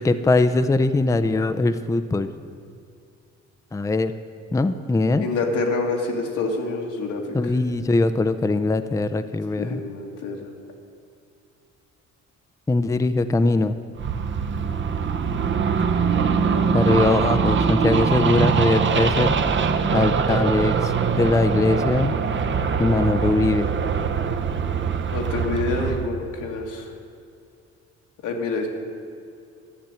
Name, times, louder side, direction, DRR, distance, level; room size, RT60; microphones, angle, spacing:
voice 1, 0.0-2.3 3.7-4.1 4.5-5.3 7.3-9.8 12.7-13.7 16.7-19.4 19.9-22.1 22.8-23.7, left 2 dB, 10° left, 10 dB, 0.5 m, -21 dB
voice 2, 5.2-7.3 9.6-10.5 16.6-16.8 25.1-26.9 28.2-28.7, left 3 dB, 90° left, 1 dB, 1.9 m, -27 dB
sound 1, 14.0-26.0, right 6 dB, 40° right, 0.8 m, -22 dB
12.0 x 6.9 x 9.0 m, 2.4 s
cardioid pair, 90°, 30 cm